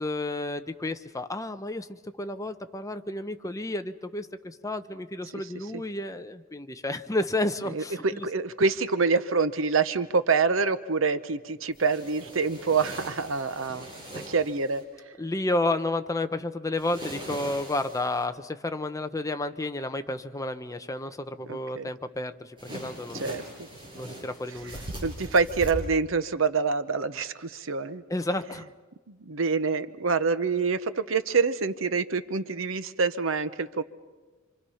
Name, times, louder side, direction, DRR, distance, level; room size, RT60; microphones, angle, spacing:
voice 1, 0.0-7.9 15.2-22.6 22.8-23.3 23.9-24.8 28.1-28.7, left 2 dB, 15° left, 9 dB, 0.8 m, -31 dB
voice 2, 5.2-5.8 7.6-13.9 14.3-15.1 21.4-21.9 23.1-23.7 24.5-28.0 29.1-33.8, right 4 dB, 70° right, 12 dB, 0.9 m, -27 dB
sound 1, 11.7-14.8 16.8-18.3 22.6-25.7, right 1 dB, 25° right, 7.0 m, -41 dB
27.0 x 26.0 x 5.7 m, 1.3 s
head